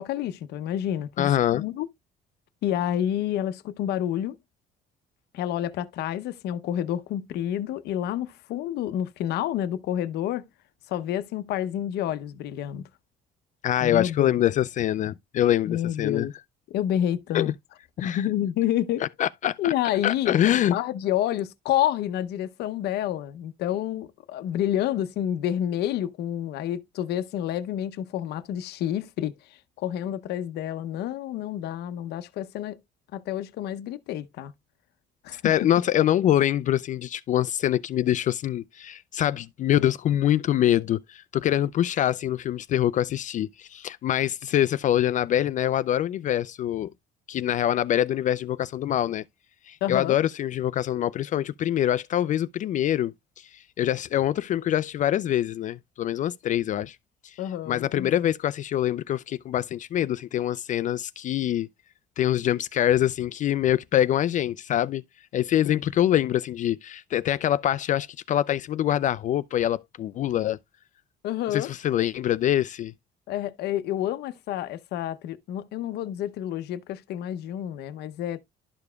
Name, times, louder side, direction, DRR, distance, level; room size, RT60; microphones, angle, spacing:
voice 1, 0.0-1.9 2.6-4.4 5.3-10.4 10.9-12.8 13.8-14.4 15.7-16.3 16.7-17.5 18.0-19.0 19.6-29.3 29.8-32.8 33.1-34.5 35.2-35.4 49.8-50.2 57.4-58.2 65.7-65.8 71.2-71.7 73.3-78.4, left 11 dB, 75° left, 0.7 m, -29 dB
voice 2, 1.2-1.6 13.6-16.3 17.3-17.5 18.0-18.3 19.0-19.7 20.0-20.7 35.3-46.9 47.3-49.2 49.7-57.0 57.2-61.7 62.2-65.0 65.3-70.6 71.5-72.9, left 11 dB, 50° left, 0.4 m, -25 dB
12.0 x 4.8 x 2.2 m
cardioid pair, 110°, 17 cm